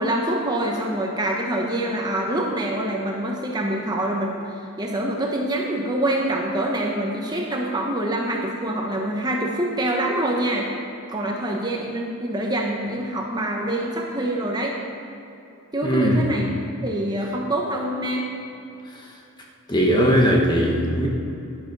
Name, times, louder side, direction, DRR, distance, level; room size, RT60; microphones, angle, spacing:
voice 1, 0.0-4.4 4.8-10.7 11.1-14.8 15.7-16.6 16.8-18.3, right 1 dB, 20° right, 0 dB, 1.0 m, -25 dB
voice 2, 15.8-16.2 19.7-21.1, equal, 20° left, -1 dB, 1.3 m, -19 dB
11.0 x 10.5 x 5.4 m, 2.8 s
head